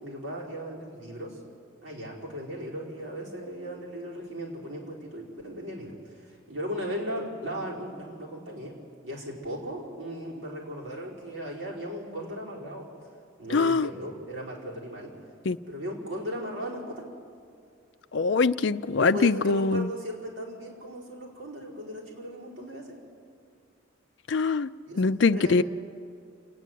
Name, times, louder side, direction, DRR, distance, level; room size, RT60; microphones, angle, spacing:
voice 1, 0.0-1.4 1.8-8.8 9.0-13.1 13.4-15.2 15.7-17.0 19.0-23.0 24.9-25.0 25.3-25.6, equal, 70° right, -4 dB, 5.0 m, -37 dB
voice 2, 13.5-13.9 15.5-15.6 18.1-19.9 24.3-24.7 25.0-25.6, left 4 dB, 60° left, 12 dB, 0.5 m, -23 dB
29.0 x 9.8 x 9.2 m, 2.4 s
head